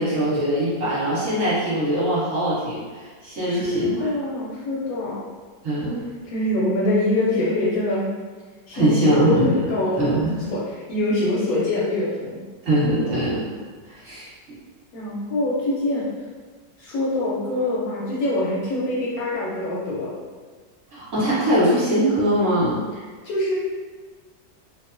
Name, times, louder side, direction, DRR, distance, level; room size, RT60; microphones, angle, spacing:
voice 1, 0.0-4.1 5.6-6.0 8.7-9.5 10.0-10.5 12.6-13.5 13.9-14.3 20.9-22.8, right 1 dB, 45° right, -10 dB, 1.2 m, -22 dB
voice 2, 3.5-5.2 6.3-8.0 8.7-10.2 10.5-10.6 10.9-12.4 14.9-16.1 16.8-20.1 23.2-23.5, left 1 dB, 70° left, -7 dB, 0.9 m, -24 dB
2.9 x 2.1 x 2.5 m, 1.4 s
omnidirectional pair, 1.9 m